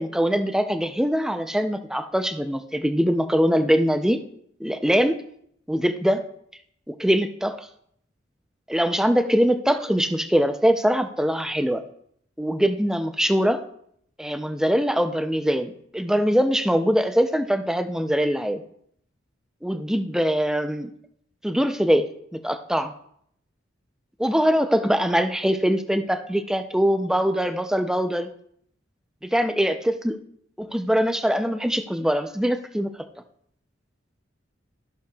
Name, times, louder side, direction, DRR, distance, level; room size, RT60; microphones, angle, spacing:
voice 1, 0.0-4.2 4.6-5.2 5.7-6.2 6.9-7.6 8.7-11.8 12.4-13.6 14.2-18.6 19.6-20.9 21.4-22.9 24.2-28.3 29.2-29.8 30.0-30.2 30.6-32.9, equal, 5° right, 7 dB, 0.4 m, -22 dB
14.0 x 6.6 x 2.3 m, 0.68 s
head